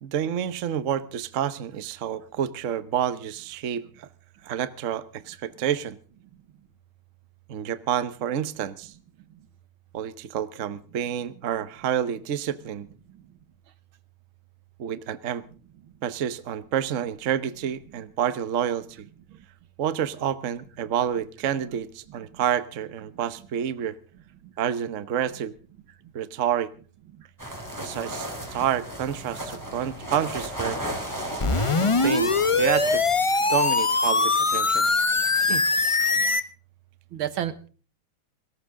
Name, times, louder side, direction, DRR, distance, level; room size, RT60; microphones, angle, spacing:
voice 1, 0.0-4.1 4.4-6.0 7.5-8.9 9.9-12.9 14.8-15.4 16.0-19.1 19.8-24.0 24.6-25.6 26.1-26.7 27.8-30.8 31.8-33.0 33.5-34.9 35.5-35.6, right 9 dB, 50° right, 14 dB, 1.0 m, -29 dB
sound 1, 27.4-33.2, right 1 dB, 10° right, 4.7 m, -35 dB
sound 2, 31.4-36.4, left 3 dB, 30° left, 0.5 m, -22 dB
voice 2, 37.1-37.7, right 11 dB, 80° right, 14 dB, 2.0 m, -33 dB
19.5 x 18.0 x 3.7 m, 0.38 s
omnidirectional pair, 2.3 m